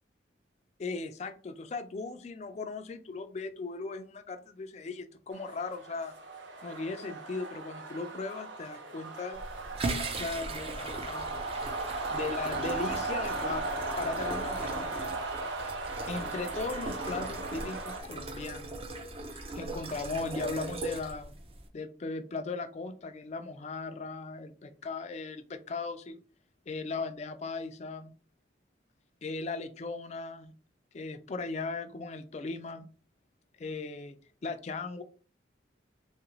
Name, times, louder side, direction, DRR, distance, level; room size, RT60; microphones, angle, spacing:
voice 1, 0.8-6.1 6.6-9.4 10.1-11.3 12.1-15.2 16.1-18.7 19.3-21.3 21.7-26.2 26.7-28.1 29.2-30.5 30.9-32.9 33.6-35.0, left 3 dB, 35° left, 9 dB, 0.3 m, -38 dB
sound 1, 5.3-18.0, right 3 dB, 75° right, 0.6 m, -37 dB
sound 2, 9.3-21.7, right 2 dB, 30° right, 0.4 m, -39 dB
3.2 x 2.4 x 3.0 m, 0.40 s
head